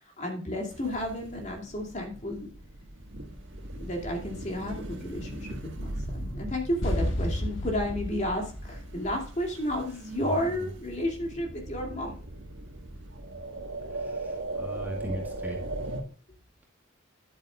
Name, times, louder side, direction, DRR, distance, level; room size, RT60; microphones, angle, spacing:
voice 1, 0.0-2.5 3.7-12.2, left 1 dB, 35° left, 1 dB, 2.5 m, -32 dB
sound 1, 0.7-16.0, right 2 dB, 65° right, 1.6 m, -39 dB
sound 2, 6.8-9.8, left 1 dB, 70° left, 1.6 m, -32 dB
voice 2, 13.9-15.6, right 1 dB, 10° right, 0 dB, 2.0 m, -38 dB
10.5 x 9.1 x 2.4 m, 0.39 s
head